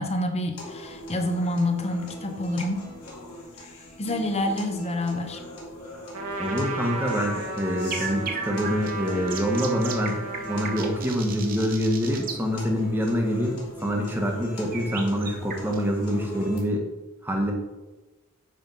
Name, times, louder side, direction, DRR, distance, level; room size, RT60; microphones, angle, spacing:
voice 1, 0.0-2.8 4.0-5.4, left 1 dB, 30° left, 4 dB, 0.8 m, -27 dB
sound 1, 0.6-16.6, left 1 dB, 80° left, 2.7 m, -40 dB
Trumpet, 6.1-11.0, right 3 dB, 65° right, 1.2 m, -34 dB
voice 2, 6.4-10.2 10.5-16.9 17.2-17.5, equal, 10° right, 0 dB, 1.2 m, -26 dB
sound 2, 7.9-12.4 14.7-15.9, right 5 dB, 40° right, 0.9 m, -35 dB
9.2 x 3.5 x 5.4 m, 1.1 s
head